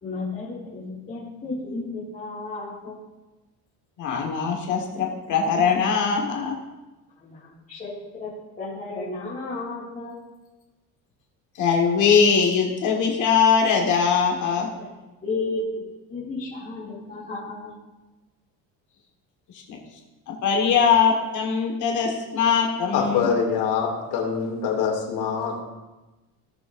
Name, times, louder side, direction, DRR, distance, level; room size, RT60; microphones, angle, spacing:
voice 1, 0.0-3.0 7.2-7.9 8.2-8.3 8.6-10.1 14.8-14.9 15.2-15.7 16.1-17.7, left 3 dB, 20° left, -11 dB, 2.3 m, -33 dB
voice 2, 4.0-6.5 11.6-14.7 19.7-19.8 20.3-23.3, left 6 dB, 50° left, 1 dB, 1.5 m, -21 dB
voice 3, 22.9-25.6, left 6 dB, 80° left, 0 dB, 2.6 m, -24 dB
18.0 x 7.0 x 2.6 m, 1.1 s
cardioid pair, 170°, 39 cm